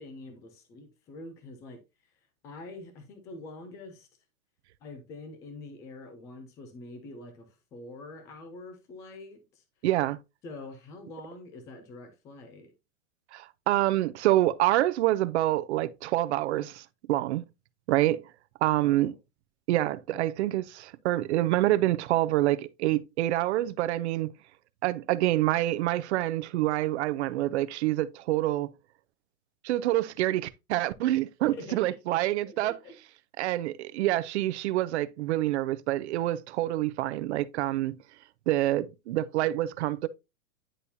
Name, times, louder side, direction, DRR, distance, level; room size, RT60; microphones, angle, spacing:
voice 1, 0.0-1.8 2.4-4.1 4.8-9.6 10.4-12.7 18.8-19.1 31.5-32.2 32.5-33.0, left 2 dB, 10° left, 0.3 m, -45 dB
voice 2, 9.8-10.2 13.3-17.4 17.9-18.2 18.6-19.1 19.7-24.3 24.8-28.7 29.6-32.8 33.4-38.0 38.5-40.1, right 15 dB, 55° right, 0.6 m, -27 dB
10.0 x 4.1 x 2.7 m
supercardioid pair, 155°, 42 cm